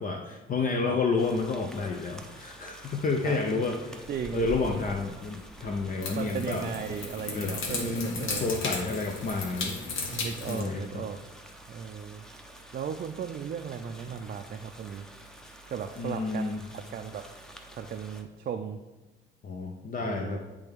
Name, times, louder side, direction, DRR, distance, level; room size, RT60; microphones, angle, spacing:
voice 1, 0.0-6.7 7.3-9.8 10.5-11.0 16.0-16.6 19.4-20.4, left 3 dB, 45° left, 3 dB, 0.6 m, -30 dB
sound 1, 1.2-18.2, right 1 dB, 5° left, 0.7 m, -49 dB
sound 2, 4.0-10.6, left 4 dB, 80° left, 1.1 m, -36 dB
voice 2, 4.1-4.5 6.1-8.6 10.1-11.2 11.7-12.2 12.7-15.1 15.7-17.2 17.7-18.8 20.0-20.4, right 7 dB, 45° right, 5 dB, 0.4 m, -36 dB
9.9 x 3.4 x 3.5 m, 1.1 s
cardioid pair, 90°, 20 cm